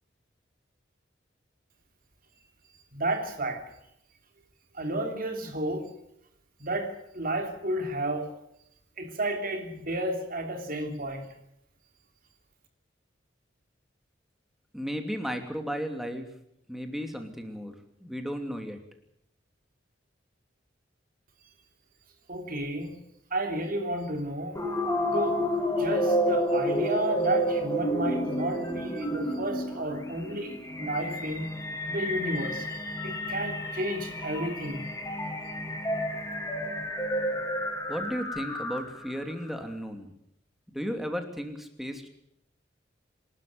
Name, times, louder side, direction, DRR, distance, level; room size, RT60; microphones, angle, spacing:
voice 1, 2.9-3.7 4.7-5.9 6.6-8.3 9.0-11.3 22.3-23.0 23.3-24.6 25.1-25.4 25.7-31.5 31.9-35.0, right 1 dB, 50° right, 3.2 m, -32 dB
voice 2, 14.7-16.3 16.7-17.7 18.0-18.8 37.9-40.1 40.7-42.1, equal, ahead, 2.9 m, -34 dB
sound 1, 24.6-39.1, equal, 20° left, 3.4 m, -30 dB
27.0 x 13.0 x 9.5 m
head